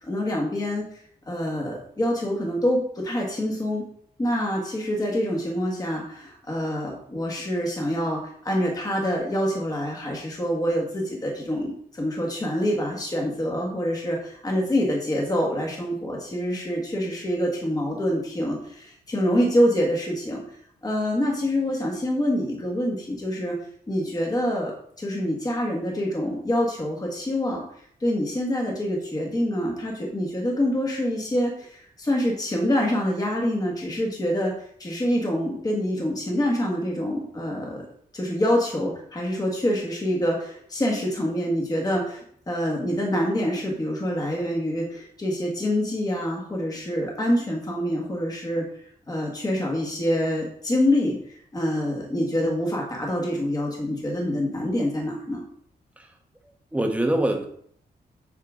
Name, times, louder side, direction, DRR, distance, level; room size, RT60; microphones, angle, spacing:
voice 1, 0.0-3.8 4.2-20.6 20.8-23.6 23.9-27.6 28.0-37.8 38.1-48.7 49.1-55.4, equal, 25° left, -1 dB, 1.5 m, -26 dB
voice 2, 56.4-57.4, right 1 dB, 10° right, 3 dB, 1.0 m, -25 dB
8.4 x 5.7 x 3.7 m, 0.63 s
wide cardioid pair, 150°, 17 cm